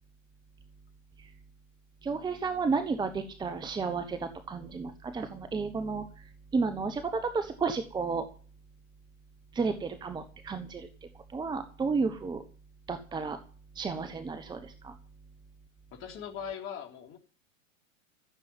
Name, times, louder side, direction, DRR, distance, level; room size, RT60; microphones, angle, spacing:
voice 1, 2.0-6.2 6.5-8.3 9.5-12.4 12.9-13.4 13.7-15.0, right 4 dB, 10° right, 9 dB, 1.1 m, -32 dB
voice 2, 15.9-17.2, left 8 dB, 30° left, 3 dB, 3.5 m, -40 dB
14.5 x 7.5 x 9.1 m, 0.38 s
figure-of-eight pair, 100°, 40 cm